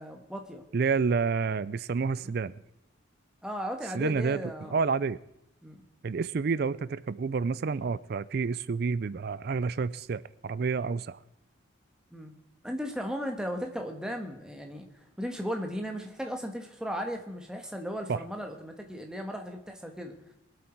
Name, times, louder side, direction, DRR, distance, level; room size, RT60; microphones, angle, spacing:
voice 1, 0.0-0.6 3.4-4.7 5.6-5.8 12.1-12.3 12.6-20.1, equal, 5° right, 3 dB, 1.4 m, -36 dB
voice 2, 0.7-2.5 3.9-5.2 6.0-11.2 18.1-18.2, right 5 dB, 50° right, 19 dB, 0.4 m, -29 dB
sound 1, 1.9-2.4 4.6-4.9 6.3-6.4 7.6-8.2, equal, 35° left, 1.8 m, -54 dB
22.5 x 8.3 x 4.5 m, 0.81 s
head